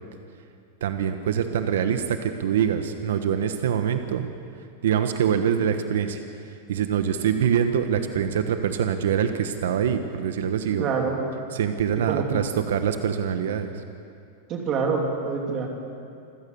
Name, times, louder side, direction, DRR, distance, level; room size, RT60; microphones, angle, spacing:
voice 1, 0.8-4.3 4.8-10.9 11.5-13.8, right 8 dB, 85° right, 8 dB, 1.2 m, -24 dB
voice 2, 10.8-11.2 12.1-12.4 14.5-15.7, right 5 dB, 25° right, 1 dB, 3.2 m, -26 dB
27.0 x 15.0 x 7.1 m, 2.5 s
supercardioid pair, 165°, 0 cm